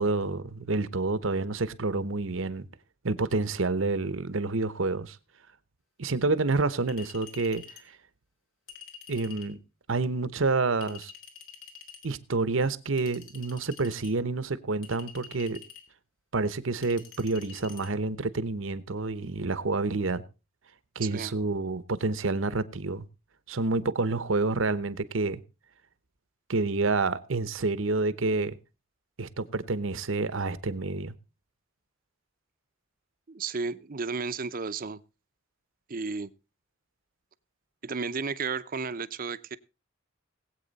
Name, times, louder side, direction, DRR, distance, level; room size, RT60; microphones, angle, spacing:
voice 1, 0.0-2.7 3.0-5.2 6.0-7.6 9.1-9.6 9.9-11.1 12.0-15.6 16.3-20.2 21.0-23.1 23.5-25.4 26.5-28.6 29.2-31.1, right 3 dB, 75° right, 0.9 m, -28 dB
Chink clink, 6.9-7.9 8.7-9.5 10.8-12.1 13.0-14.1 14.8-15.9 16.8-17.9, left 7 dB, 75° left, 3.0 m, -48 dB
voice 2, 21.0-21.3 33.3-35.0 35.9-36.3 37.8-39.6, right 4 dB, 45° right, 0.6 m, -33 dB
20.0 x 8.3 x 4.0 m
head